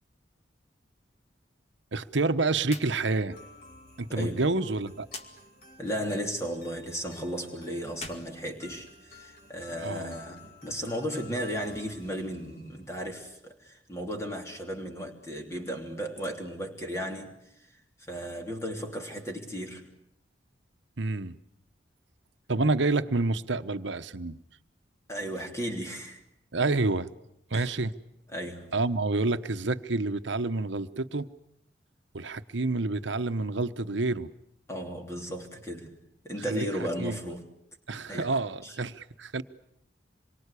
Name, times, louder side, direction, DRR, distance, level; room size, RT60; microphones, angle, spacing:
voice 1, 1.9-3.4 4.0-5.1 9.8-10.1 21.0-21.3 22.5-24.4 26.5-27.1 27.5-27.9 28.7-31.3 32.1-34.3 36.5-36.7 37.0-37.2 37.9-39.4, right 3 dB, 75° right, 1.1 m, -28 dB
sound 1, 2.6-2.9 3.2-3.3 5.1-5.3 7.9-9.2, left 3 dB, 35° left, 2.2 m, -43 dB
sound 2, 3.3-13.0, left 2 dB, 50° left, 5.6 m, -53 dB
voice 2, 4.1-4.5 5.8-17.3 18.1-19.9 25.1-26.2 27.5-27.7 28.3-28.7 34.7-36.0 36.2-37.4 38.1-38.4 38.6-38.8, equal, 15° left, 3.2 m, -35 dB
27.0 x 23.5 x 8.4 m
head